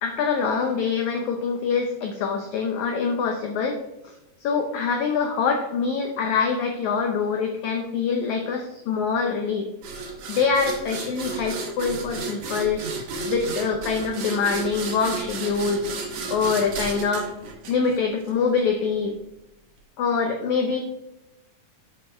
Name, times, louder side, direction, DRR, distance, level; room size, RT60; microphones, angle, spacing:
voice 1, 0.0-3.8 4.4-9.7 10.3-12.8 13.3-15.9 16.3-17.3 17.7-19.2 20.0-20.8, left 5 dB, 75° left, 3 dB, 1.7 m, -24 dB
sound 1, 9.8-18.3, right 4 dB, 60° right, 1.7 m, -33 dB
6.9 x 6.2 x 4.6 m, 0.92 s
omnidirectional pair, 4.3 m